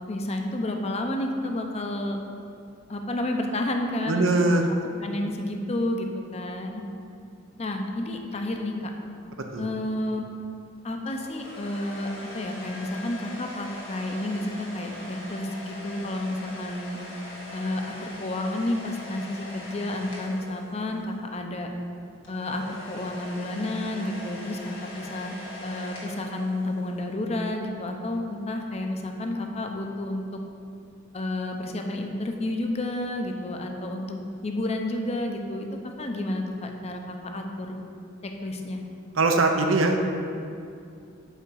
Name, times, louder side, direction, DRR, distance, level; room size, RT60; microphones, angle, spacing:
voice 1, 0.1-2.2 2.9-4.3 5.0-6.8 7.6-8.9 9.6-10.2 10.8-17.0 17.5-21.7 22.3-25.4 25.6-30.4 31.1-35.7 36.0-37.8 38.2-38.8, left 1 dB, 35° left, 3 dB, 0.6 m, -30 dB
voice 2, 4.1-4.7 9.5-9.7 39.2-40.0, right 2 dB, 85° right, 4 dB, 0.7 m, -21 dB
sound 1, 11.1-21.2 22.2-27.0, left 1 dB, 85° left, 1.7 m, -42 dB
5.6 x 4.9 x 6.2 m, 2.4 s
head